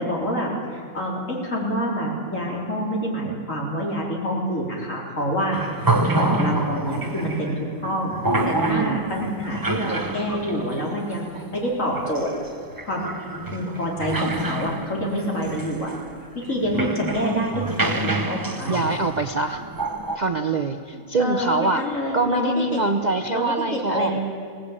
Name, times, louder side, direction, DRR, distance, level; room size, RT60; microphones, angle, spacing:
voice 1, 0.0-5.6 6.1-8.2 8.5-12.3 12.8-13.0 13.4-15.9 16.3-18.9 21.2-22.8 23.3-24.2, equal, 40° left, -2 dB, 4.5 m, -27 dB
sound 1, 5.5-20.2, right 2 dB, 20° right, 0.6 m, -28 dB
voice 2, 8.7-9.1 18.7-19.6 20.1-21.8 22.1-24.2, right 3 dB, 75° right, 6 dB, 0.4 m, -24 dB
22.0 x 17.0 x 8.7 m, 2.2 s
omnidirectional pair, 2.0 m